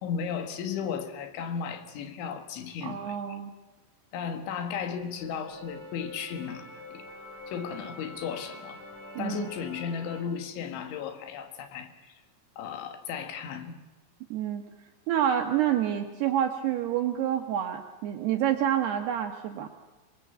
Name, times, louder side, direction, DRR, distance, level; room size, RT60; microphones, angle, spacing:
voice 1, 0.0-3.4 4.1-7.0 7.5-8.8 9.2-12.2 12.6-13.7, left 7 dB, 75° left, 7 dB, 4.1 m, -35 dB
voice 2, 2.8-3.5 9.2-9.5 14.3-14.6 15.1-19.7, right 10 dB, 70° right, 5 dB, 2.8 m, -28 dB
sound 1, 4.7-10.2, left 1 dB, 25° left, 7.0 m, -45 dB
25.0 x 20.5 x 8.1 m, 1.2 s
omnidirectional pair, 5.5 m